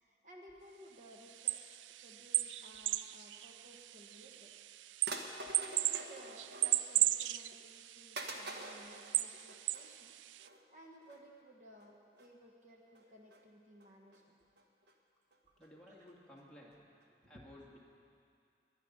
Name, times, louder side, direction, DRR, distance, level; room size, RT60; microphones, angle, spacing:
voice 1, 0.0-4.5 5.2-14.4 15.5-15.6 15.9-16.1 17.2-17.4, equal, 45° right, 0 dB, 1.4 m, -58 dB
sound 1, 1.3-10.5, right 14 dB, 85° right, 0.3 m, -37 dB
sound 2, 4.3-4.4 5.1-7.0 7.4-7.5 8.1-10.0 10.4-10.6 11.0-11.2 11.7-11.9 12.2-12.3 12.9-13.4 13.8-14.2 14.6-14.9 15.3-15.4 15.6-15.7 16.1-16.2 16.4-16.5 16.7-16.8 17.0-17.1, right 2 dB, 70° right, 1.3 m, -47 dB
voice 2, 15.6-16.9 17.3-17.8, left 1 dB, 5° left, -5 dB, 2.0 m, -56 dB
20.0 x 10.5 x 5.3 m, 2.4 s
head